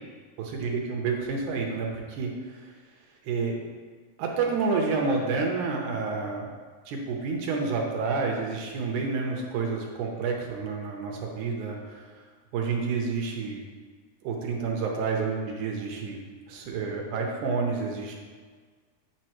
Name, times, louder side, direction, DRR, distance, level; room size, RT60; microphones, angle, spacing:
voice 1, 0.5-2.7 3.3-3.6 4.2-6.5 6.9-12.1 12.5-13.6 14.2-16.2 16.5-18.1, right 4 dB, 80° right, 0 dB, 2.2 m, -29 dB
8.8 x 4.4 x 3.1 m, 1.5 s
omnidirectional pair, 3.7 m